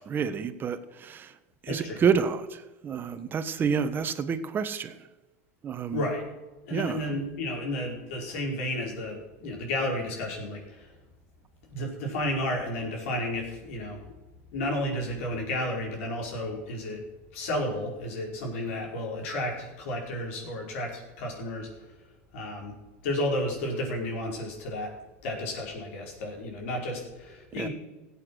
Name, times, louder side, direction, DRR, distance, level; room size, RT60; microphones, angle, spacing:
voice 1, 0.0-1.3 1.6-5.0 5.6-6.0 6.7-7.0 27.6-27.7, right 6 dB, 30° right, 11 dB, 1.3 m, -29 dB
voice 2, 1.7-2.0 5.9-6.2 6.6-10.9 11.7-14.1 14.5-17.0 17.3-21.7 22.3-22.8 23.0-24.9 25.2-27.7, left 1 dB, 75° left, 0 dB, 5.1 m, -32 dB
17.0 x 8.4 x 6.4 m, 1.1 s
supercardioid pair, 120°, 7 cm